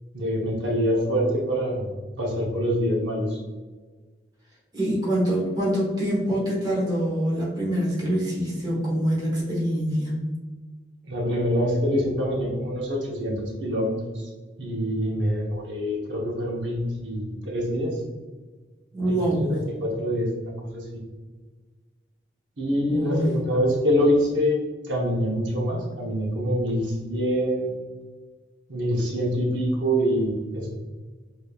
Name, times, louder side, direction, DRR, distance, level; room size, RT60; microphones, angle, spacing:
voice 1, 0.1-1.9 2.2-3.4 11.1-14.3 14.6-18.0 19.1-21.0 22.6-24.5 24.8-27.7 28.7-30.7, equal, 75° right, -3 dB, 0.9 m, -25 dB
voice 2, 4.7-10.3 18.9-19.5 22.9-23.4, right 1 dB, 20° right, -6 dB, 1.2 m, -25 dB
4.9 x 2.8 x 2.3 m, 1.4 s
head